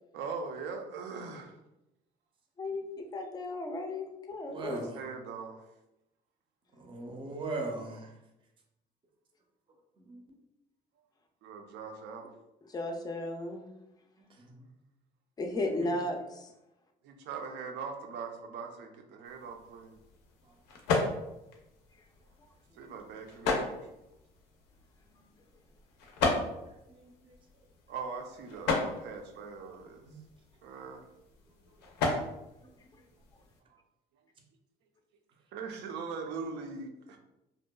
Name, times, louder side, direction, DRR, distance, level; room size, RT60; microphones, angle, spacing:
voice 1, 0.1-1.5 4.5-5.7 11.4-12.3 17.0-20.0 22.8-23.9 27.9-30.0 30.6-31.0 33.7-33.8 35.5-37.2, right 5 dB, 85° right, 4 dB, 0.5 m, -41 dB
voice 2, 2.6-4.9 12.7-13.7 15.4-16.5, left 2 dB, 25° left, 4 dB, 0.4 m, -35 dB
voice 3, 4.5-5.0 6.8-8.1 14.4-14.7 15.8-15.9 26.7-27.3 30.1-30.2 32.6-32.7, right 2 dB, 30° right, 2 dB, 0.5 m, -39 dB
sound 1, 19.2-33.6, left 3 dB, 85° left, 0.5 m, -36 dB
2.6 x 2.2 x 2.2 m, 0.91 s
cardioid pair, 110°, 17 cm